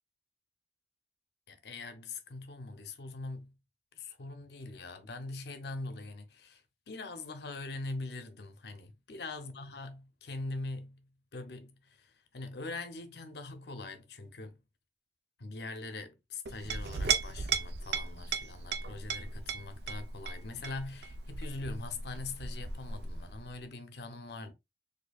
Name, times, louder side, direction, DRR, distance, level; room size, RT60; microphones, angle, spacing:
voice 1, 1.5-3.6 3.9-14.6 15.4-24.5, left 3 dB, 65° left, 0.7 m, -42 dB
Chink clink, 16.5-23.6, right 6 dB, 70° right, 0.5 m, -36 dB
4.3 x 2.7 x 2.3 m
head